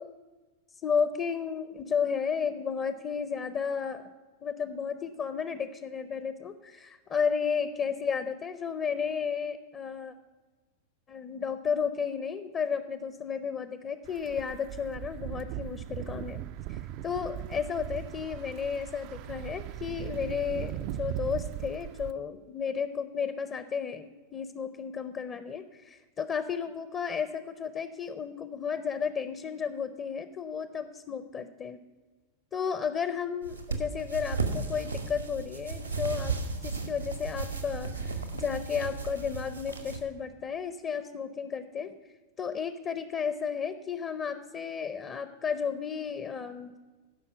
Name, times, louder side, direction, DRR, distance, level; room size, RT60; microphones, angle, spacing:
voice 1, 0.8-4.1 4.4-10.1 11.1-16.4 16.7-31.8 32.5-36.3 36.6-41.9 42.4-46.8, left 6 dB, 30° left, 11 dB, 0.6 m, -33 dB
sound 1, 14.0-22.1, right 13 dB, 45° right, 0.3 m, -39 dB
sound 2, 33.4-40.0, right 4 dB, 85° right, 1.4 m, -35 dB
12.5 x 5.5 x 8.1 m, 1.3 s
figure-of-eight pair, 90°, 0 cm